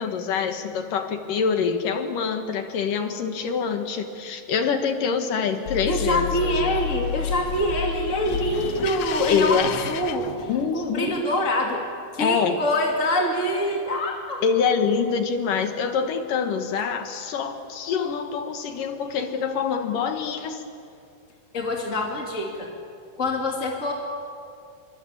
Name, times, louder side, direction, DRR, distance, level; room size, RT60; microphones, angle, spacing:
voice 1, 0.0-6.7 9.3-9.7 10.5-11.2 12.2-12.6 14.4-20.6, left 6 dB, 60° left, 6 dB, 2.8 m, -25 dB
sound 1, 5.7-11.0, left 9 dB, 75° left, 2.2 m, -31 dB
voice 2, 5.9-11.8 12.1-14.4 21.5-22.7 23.2-23.9, left 1 dB, 25° left, 0 dB, 1.9 m, -25 dB
27.0 x 24.5 x 8.8 m, 2.4 s
omnidirectional pair, 4.9 m